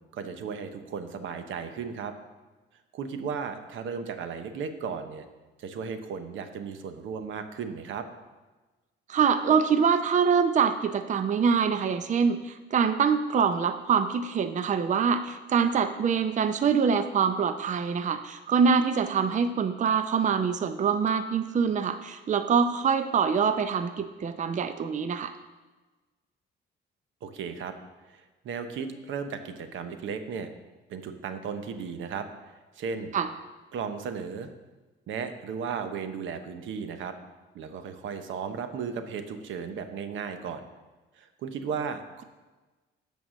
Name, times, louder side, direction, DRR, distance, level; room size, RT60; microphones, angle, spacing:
voice 1, 0.1-2.1 2.9-5.3 5.6-8.1 27.2-27.8 28.1-30.5 30.9-33.1 33.7-34.5 35.1-37.2 37.5-40.6 41.2-42.2, right 6 dB, 80° right, 9 dB, 0.9 m, -35 dB
voice 2, 9.1-25.3 33.1-33.3, right 6 dB, 40° right, 9 dB, 0.5 m, -25 dB
8.8 x 5.4 x 6.2 m, 1.2 s
cardioid pair, 90°, 20 cm